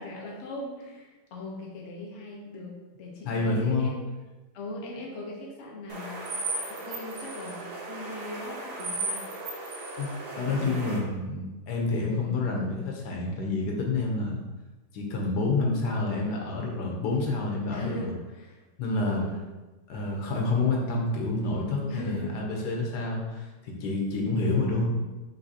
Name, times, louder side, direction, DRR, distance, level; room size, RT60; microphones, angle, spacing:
voice 1, 0.0-4.1 4.5-6.3 6.7-9.3 10.3-11.0 12.1-12.4 17.7-18.6 19.0-19.5 21.7-22.7 24.3-24.8, left 2 dB, 50° left, -2 dB, 1.1 m, -40 dB
voice 2, 3.2-3.9 10.0-14.4 14.9-18.1 18.8-19.2 19.9-25.0, left 3 dB, 85° left, 0 dB, 1.4 m, -28 dB
sound 1, 5.9-11.0, right 2 dB, 75° right, 1.4 m, -36 dB
5.7 x 3.1 x 2.8 m, 1.1 s
omnidirectional pair, 1.7 m